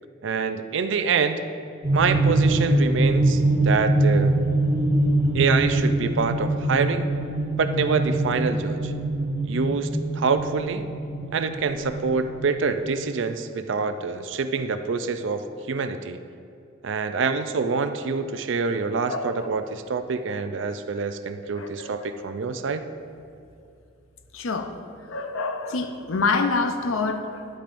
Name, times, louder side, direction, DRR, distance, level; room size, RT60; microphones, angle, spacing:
voice 1, 0.2-1.4 1.9-4.4 5.3-7.1 7.6-8.9 9.4-10.8 11.3-16.2 16.8-22.8, right 5 dB, 65° right, 9 dB, 0.4 m, -26 dB
sound 1, 1.8-13.0, right 2 dB, 20° left, 1.7 m, -23 dB
voice 2, 19.1-19.5 21.6-22.1 24.3-24.8 25.1-27.5, left 4 dB, 80° left, 7 dB, 0.6 m, -27 dB
9.9 x 8.7 x 2.6 m, 2.6 s
head